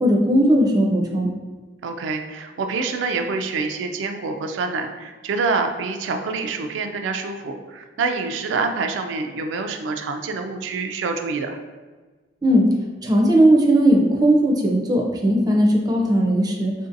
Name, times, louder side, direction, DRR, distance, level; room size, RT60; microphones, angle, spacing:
voice 1, 0.0-1.3 12.4-12.7 13.0-16.7, right 1 dB, 20° right, 0 dB, 0.4 m, -17 dB
voice 2, 1.8-11.6, right 4 dB, 90° right, 6 dB, 0.3 m, -26 dB
3.7 x 2.6 x 2.5 m, 1.3 s
head